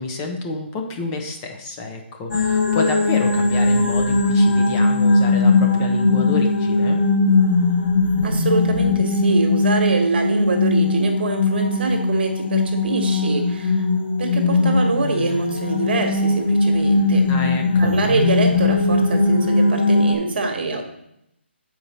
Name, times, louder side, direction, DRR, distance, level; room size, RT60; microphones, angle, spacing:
voice 1, 0.0-7.0 17.3-17.9, left 2 dB, 20° left, 3 dB, 0.8 m, -29 dB
sound 1, 2.3-20.2, left 3 dB, 60° left, 1.3 m, -19 dB
voice 2, 8.2-13.8 14.2-17.2 17.8-20.9, right 3 dB, 55° right, 4 dB, 1.4 m, -24 dB
7.6 x 4.6 x 4.2 m, 0.80 s
hypercardioid pair, 160°, 7 cm